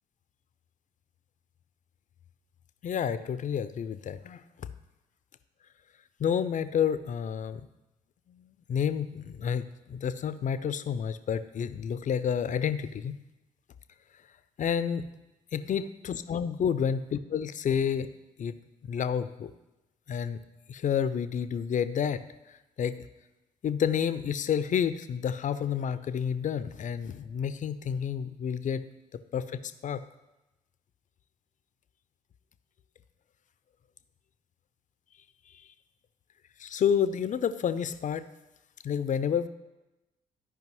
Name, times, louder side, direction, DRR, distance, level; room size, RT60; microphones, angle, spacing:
voice 1, 2.8-4.4 6.2-7.6 8.3-13.2 14.6-15.0 15.5-17.0 17.3-18.1 18.4-18.6 18.9-19.5 20.1-20.4 20.7-22.2 22.8-23.0 23.6-28.8 29.3-30.0 36.6-38.2 38.8-39.5, left 8 dB, 40° left, 13 dB, 0.5 m, -29 dB
13.5 x 5.1 x 3.0 m, 1.0 s
figure-of-eight pair, 45°, 19 cm